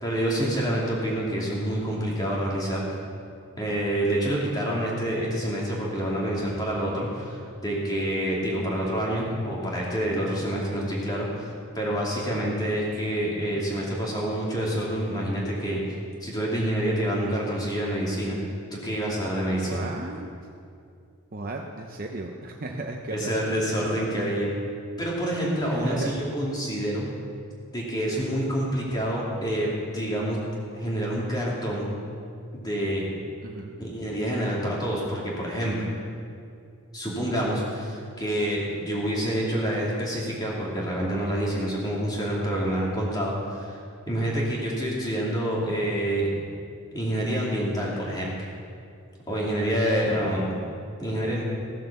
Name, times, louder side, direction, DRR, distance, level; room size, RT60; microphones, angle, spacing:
voice 1, 0.0-2.8 3.6-15.8 16.2-18.4 18.7-19.8 23.1-24.5 25.0-27.1 27.7-30.4 30.7-31.9 32.5-33.0 33.8-35.9 36.9-43.8 44.1-46.3 46.9-48.3 49.3-50.6 51.0-51.4, right 1 dB, 20° left, -4 dB, 2.6 m, -27 dB
voice 2, 0.6-0.9 10.2-10.5 12.3-12.6 19.6-20.3 21.3-23.5 25.7-26.3 28.2-28.5 33.4-33.7, right 2 dB, 40° right, 1 dB, 0.7 m, -36 dB
16.0 x 7.4 x 7.0 m, 2.4 s
head